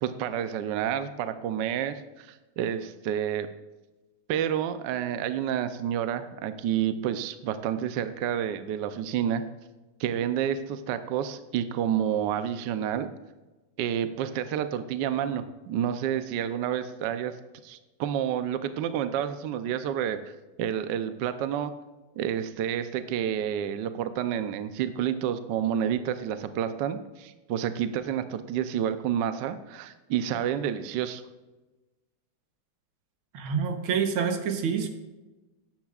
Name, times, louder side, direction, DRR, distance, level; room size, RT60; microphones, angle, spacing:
voice 1, 0.0-3.5 4.3-9.4 10.0-13.1 13.8-17.3 17.6-20.3 20.6-21.8 22.2-31.2, right 9 dB, 70° right, 10 dB, 1.2 m, -29 dB
voice 2, 33.3-34.9, right 6 dB, 90° right, 6 dB, 1.9 m, -27 dB
14.0 x 10.5 x 2.4 m, 1.1 s
omnidirectional pair, 2.3 m